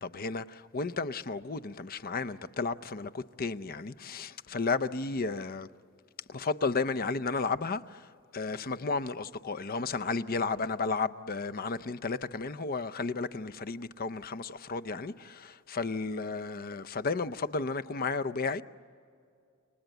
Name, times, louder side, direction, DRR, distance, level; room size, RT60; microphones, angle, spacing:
voice 1, 0.0-5.7 6.3-8.1 8.3-18.6, left 4 dB, 45° left, 0.7 m, -33 dB
29.5 x 25.0 x 8.0 m
head